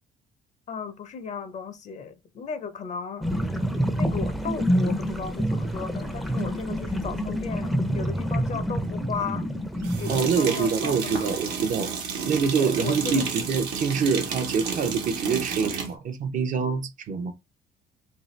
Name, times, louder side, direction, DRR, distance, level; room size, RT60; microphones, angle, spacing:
voice 1, 0.7-3.3 4.0-9.5 10.0-11.4 12.6-13.2, left 6 dB, 45° left, 0.6 m, -35 dB
sound 1, 3.2-10.2, equal, ahead, 0.5 m, -27 dB
sound 2, 6.4-6.5 9.8-15.9, right 6 dB, 80° right, 0.9 m, -31 dB
voice 2, 10.1-11.9 12.3-17.3, right 5 dB, 50° right, 0.5 m, -25 dB
2.6 x 2.3 x 3.1 m
cardioid pair, 110°, 17 cm